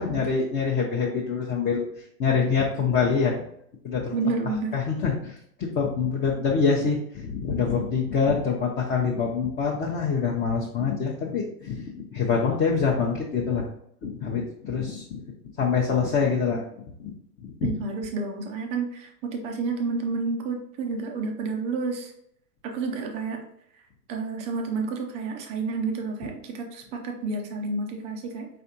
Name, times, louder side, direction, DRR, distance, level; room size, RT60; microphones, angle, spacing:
voice 1, 0.0-1.8 2.2-3.4 3.8-4.1 4.7-13.6 14.0-15.2 15.6-16.6 17.0-17.1 17.4-17.5, left 5 dB, 25° left, -2 dB, 0.7 m, -25 dB
voice 2, 4.1-4.7 17.6-22.1 22.6-23.4 24.1-28.5, right 4 dB, 15° right, 3 dB, 0.3 m, -30 dB
4.7 x 3.3 x 2.7 m, 0.70 s
hypercardioid pair, 110°, 47 cm